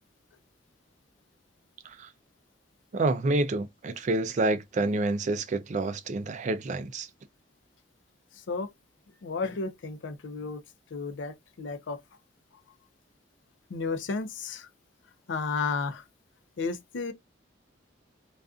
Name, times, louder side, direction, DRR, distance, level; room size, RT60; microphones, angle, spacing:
voice 1, 2.9-7.1, right 2 dB, 40° right, 0.3 m, -28 dB
voice 2, 9.2-10.6 10.9-12.0 13.7-14.7 15.3-16.0 16.6-17.1, left 4 dB, 70° left, 0.5 m, -32 dB
2.4 x 2.3 x 2.3 m
head